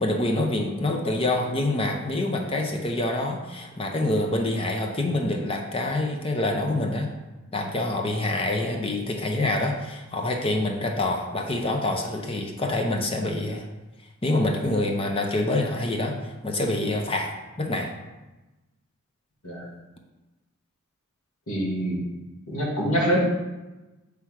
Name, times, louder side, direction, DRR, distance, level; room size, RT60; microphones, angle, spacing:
voice 1, 0.0-7.1 7.5-13.6 14.2-17.9, left 2 dB, 25° left, 3 dB, 0.7 m, -26 dB
voice 2, 21.5-22.0 22.5-23.2, equal, 90° left, -4 dB, 1.7 m, -25 dB
7.6 x 3.5 x 4.7 m, 1.1 s
head